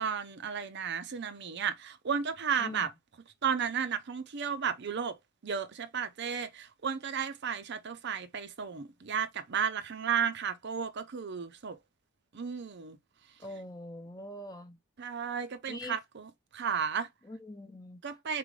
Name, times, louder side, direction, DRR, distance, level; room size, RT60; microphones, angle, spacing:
voice 1, 0.0-2.9 3.4-5.1 5.4-11.7 12.3-13.0 15.0-17.1 18.0-18.4, right 7 dB, 50° right, 0.6 m, -33 dB
voice 2, 13.4-14.8 15.7-16.0 17.2-18.0, left 1 dB, 15° left, 0.7 m, -43 dB
4.1 x 3.8 x 3.1 m
head